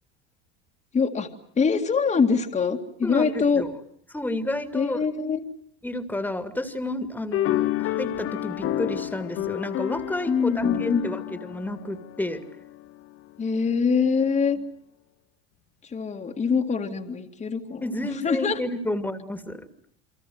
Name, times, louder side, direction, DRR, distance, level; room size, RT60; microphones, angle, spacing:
voice 1, 0.9-1.3 1.6-3.6 4.7-5.4 10.3-11.1 13.4-14.6 15.8-17.9 18.2-18.6, left 5 dB, 20° left, 4 dB, 2.1 m, -24 dB
voice 2, 3.0-3.7 4.1-5.0 5.8-12.4 17.8-19.7, left 1 dB, 5° left, 9 dB, 2.4 m, -31 dB
sound 1, 7.3-12.9, left 14 dB, 40° left, 1.1 m, -29 dB
28.5 x 24.0 x 7.8 m, 0.62 s
hypercardioid pair, 105°, 32 cm